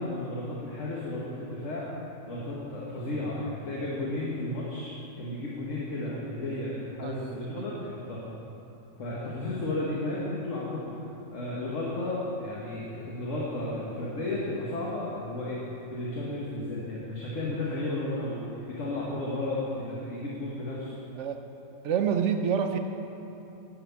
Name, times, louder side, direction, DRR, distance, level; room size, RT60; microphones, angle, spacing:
voice 1, 0.0-1.8 2.3-8.2 9.0-10.9 11.3-15.6 15.9-21.0, left 2 dB, 60° left, -6 dB, 1.6 m, -33 dB
voice 2, 7.0-7.6 21.1-21.4 21.8-22.8, right 7 dB, 65° right, 6 dB, 0.9 m, -28 dB
10.5 x 6.0 x 7.0 m, 2.9 s
omnidirectional pair, 1.5 m